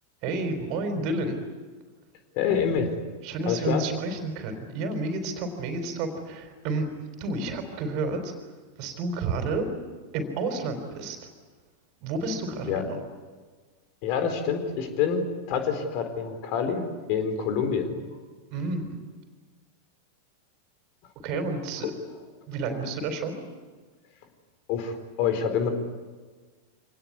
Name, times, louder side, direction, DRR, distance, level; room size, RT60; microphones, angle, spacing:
voice 1, 0.2-1.4 3.2-6.9 7.2-8.3 8.8-9.7 10.1-11.3 12.0-13.0 18.5-19.0 21.2-21.9 22.5-23.4, right 3 dB, 40° right, 7 dB, 4.0 m, -30 dB
voice 2, 2.3-2.9 3.5-3.8 12.6-12.8 14.0-15.2 15.5-18.0 24.7-25.7, left 7 dB, 45° left, 7 dB, 4.2 m, -27 dB
26.0 x 19.0 x 9.7 m, 1.4 s
figure-of-eight pair, 90°, 0 cm